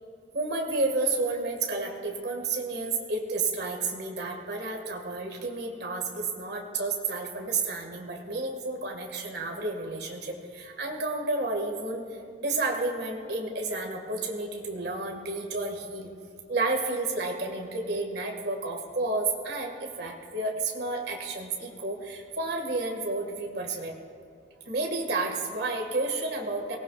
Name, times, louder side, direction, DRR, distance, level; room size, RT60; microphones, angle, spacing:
voice 1, 0.3-12.0 12.4-16.1 16.5-24.0 24.7-26.8, right 3 dB, 60° right, 2 dB, 1.9 m, -31 dB
22.5 x 18.5 x 2.5 m, 2.4 s
head